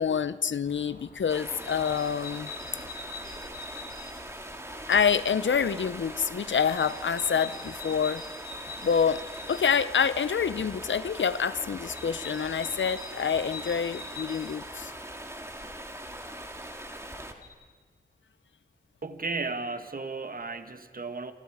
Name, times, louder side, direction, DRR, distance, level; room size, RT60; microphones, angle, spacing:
voice 1, 0.0-2.5 4.9-8.2 8.8-9.2 9.5-14.9, left 7 dB, 80° left, 15 dB, 0.7 m, -27 dB
sound 1, 0.6-17.5, left 4 dB, 50° left, 3.9 m, -46 dB
Stream, 1.3-17.3, right 1 dB, 15° right, 2.1 m, -41 dB
voice 2, 19.0-21.3, right 3 dB, 50° right, 9 dB, 1.5 m, -34 dB
27.0 x 27.0 x 4.9 m, 1.5 s
wide cardioid pair, 65°, 19 cm